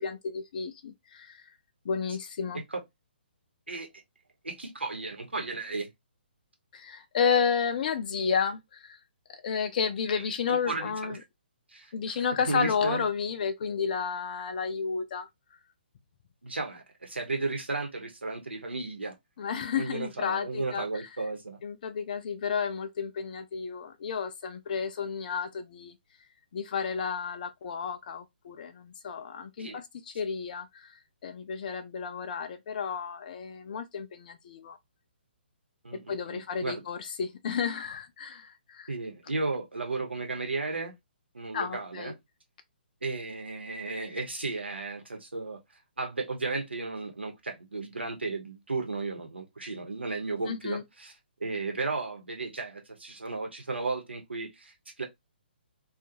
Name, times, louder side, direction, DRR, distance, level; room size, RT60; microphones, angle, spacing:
voice 1, 0.0-1.4 1.9-2.6 6.7-9.0 9.3-11.2 11.9-15.3 19.4-21.1 21.6-25.9 26.5-30.9 31.2-34.8 36.1-38.9 41.5-42.1 50.4-50.8, left 6 dB, 50° left, 0.4 m, -32 dB
voice 2, 4.4-5.9 10.2-11.2 11.7-13.1 16.4-19.1 19.8-21.6 29.6-29.8 35.8-36.8 38.9-40.9 41.3-42.2 43.0-45.6 46.0-51.1 51.4-55.0, right 3 dB, 85° right, 1.0 m, -34 dB
2.5 x 2.4 x 2.8 m
figure-of-eight pair, 135°, 6 cm